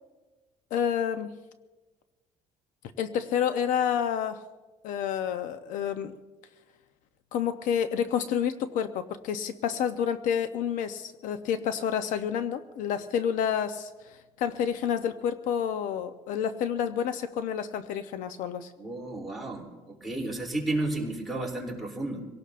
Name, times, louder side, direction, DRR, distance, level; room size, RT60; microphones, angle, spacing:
voice 1, 0.7-1.3 3.0-4.4 4.8-6.2 7.3-18.7, left 8 dB, 70° left, 10 dB, 0.7 m, -29 dB
voice 2, 18.8-22.2, right 2 dB, ahead, -4 dB, 3.1 m, -32 dB
26.5 x 17.5 x 2.5 m, 1.2 s
cardioid pair, 155°, 14 cm